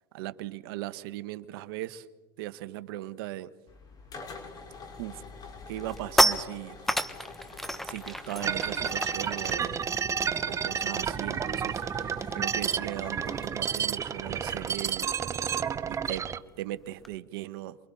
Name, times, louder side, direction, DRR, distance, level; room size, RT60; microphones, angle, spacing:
voice 1, 0.1-2.1 2.4-3.5 5.0-5.2 5.7-6.8 7.8-9.8 10.4-15.1 15.9-16.3 16.6-17.8, right 15 dB, 70° right, 13 dB, 1.2 m, -38 dB
sound 1, 3.7-16.2, left 4 dB, 30° left, 4.8 m, -47 dB
sound 2, 4.8-5.0 5.4-11.4 11.6-11.9 12.1-17.2, equal, ahead, 1.2 m, -32 dB
sound 3, 8.4-16.4, right 7 dB, 25° right, 0.8 m, -31 dB
28.0 x 24.0 x 4.2 m, 1.3 s
supercardioid pair, 110°, 13 cm